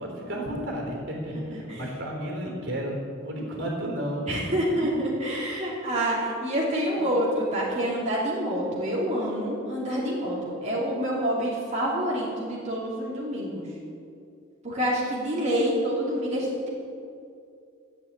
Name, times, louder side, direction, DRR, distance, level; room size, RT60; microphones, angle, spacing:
voice 1, 0.0-5.0 7.0-7.1, equal, 65° right, 0 dB, 3.7 m, -33 dB
voice 2, 4.3-13.7 14.6-16.7, equal, 35° right, -6 dB, 2.9 m, -27 dB
13.0 x 8.5 x 8.8 m, 2.5 s
head